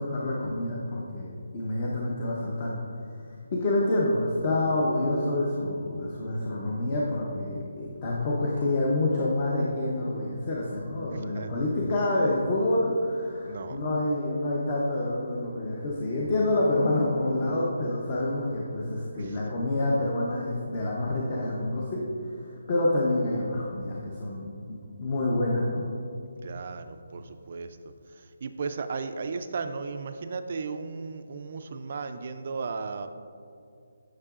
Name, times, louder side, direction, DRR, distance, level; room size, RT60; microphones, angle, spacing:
voice 1, 0.0-2.7 3.5-25.8, left 1 dB, 30° left, -4 dB, 0.7 m, -27 dB
voice 2, 11.1-11.5 13.4-13.8 19.1-19.4 26.4-27.8 28.1-33.1, right 4 dB, 40° right, 9 dB, 0.3 m, -35 dB
9.7 x 5.9 x 2.4 m, 2.5 s
hypercardioid pair, 170°, 0 cm